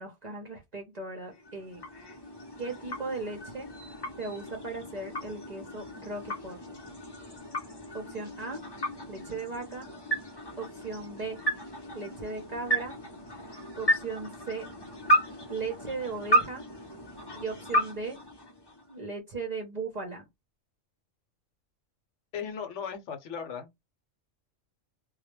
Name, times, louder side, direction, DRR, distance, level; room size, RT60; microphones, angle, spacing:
voice 1, 0.0-1.8 2.6-3.7 4.2-6.6 7.9-8.6 9.1-9.9 10.6-11.4 11.9-13.0 13.8-14.7 15.5-16.6 17.3-18.2 18.9-20.3, right 3 dB, 45° right, 0.5 m, -37 dB
sound 1, 1.3-19.0, right 1 dB, 30° left, 0.5 m, -33 dB
voice 2, 22.3-23.7, left 7 dB, 70° left, 0.9 m, -37 dB
2.2 x 2.1 x 3.0 m
omnidirectional pair, 1.3 m